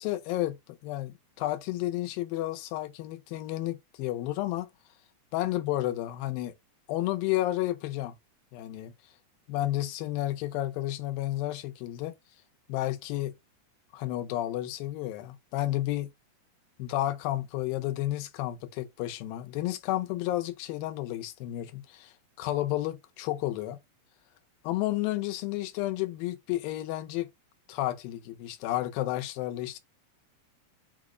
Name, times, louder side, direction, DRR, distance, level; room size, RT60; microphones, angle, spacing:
voice 1, 0.0-4.7 5.3-6.5 6.9-8.1 8.5-8.9 9.5-12.1 12.7-13.4 13.9-16.1 16.8-23.8 24.6-27.3 27.7-29.8, left 15 dB, 85° left, 2.4 m, -31 dB
5.8 x 2.1 x 3.6 m
omnidirectional pair, 4.0 m